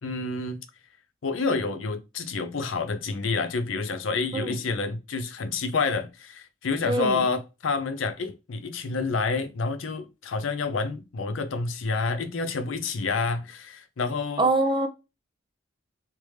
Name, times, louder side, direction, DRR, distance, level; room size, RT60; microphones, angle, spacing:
voice 1, 0.0-0.6 1.2-14.5, left 4 dB, 85° left, 0.5 m, -28 dB
voice 2, 6.8-7.3 14.4-14.9, right 2 dB, 25° right, 0.5 m, -24 dB
3.2 x 2.9 x 3.2 m
head